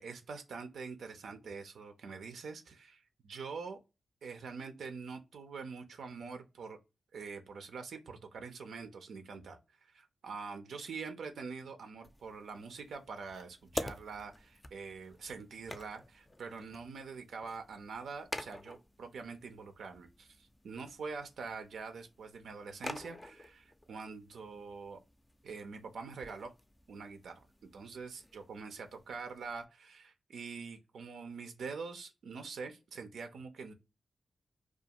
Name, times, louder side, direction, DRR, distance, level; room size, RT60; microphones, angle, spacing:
voice 1, 0.0-3.8 4.2-6.8 7.1-25.0 25.4-26.5 26.9-27.4 27.7-33.7, right 5 dB, 80° right, 0.4 m, -45 dB
sound 1, 12.0-29.6, left 1 dB, 25° left, 0.4 m, -49 dB
2.3 x 2.3 x 2.8 m
supercardioid pair, 40°, 0 cm